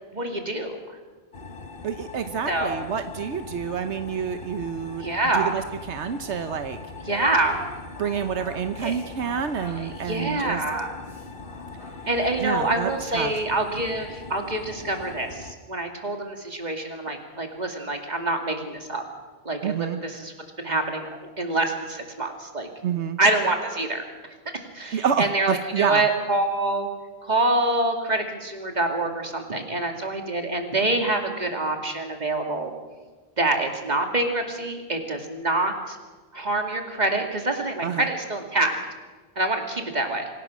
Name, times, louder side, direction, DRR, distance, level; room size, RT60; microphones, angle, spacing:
voice 1, 0.1-0.8 2.5-2.8 5.0-5.6 7.1-7.6 8.8-9.0 9.8-10.9 12.1-19.0 19.4-21.1 21.4-22.7 23.2-24.0 24.7-26.9 27.2-32.7 33.4-36.0 36.3-38.7 39.4-40.3, right 2 dB, 40° right, 4 dB, 2.6 m, -26 dB
sound 1, 1.3-15.5, left 3 dB, 50° left, 1.7 m, -41 dB
voice 2, 1.8-5.1 5.3-6.8 8.0-10.6 12.4-13.3 19.6-20.0 22.8-23.2 24.9-26.1 37.8-38.1, right 7 dB, 80° right, 9 dB, 1.2 m, -28 dB
Singing, 7.1-12.1, equal, 30° left, 2.7 m, -44 dB
25.5 x 17.0 x 6.2 m, 1.3 s
omnidirectional pair, 1.2 m